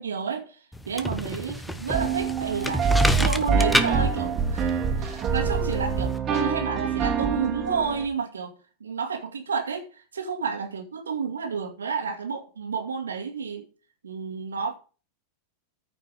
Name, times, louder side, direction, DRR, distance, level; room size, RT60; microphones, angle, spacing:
voice 1, 0.0-2.9 3.2-8.5 8.8-13.7 14.0-14.7, right 5 dB, 70° right, 2.2 m, -30 dB
sound 1, 0.7-6.2, left 1 dB, 5° left, 1.0 m, -30 dB
sound 2, 1.9-8.1, right 5 dB, 25° right, 2.3 m, -25 dB
14.5 x 5.9 x 4.9 m
figure-of-eight pair, 90°, 0 cm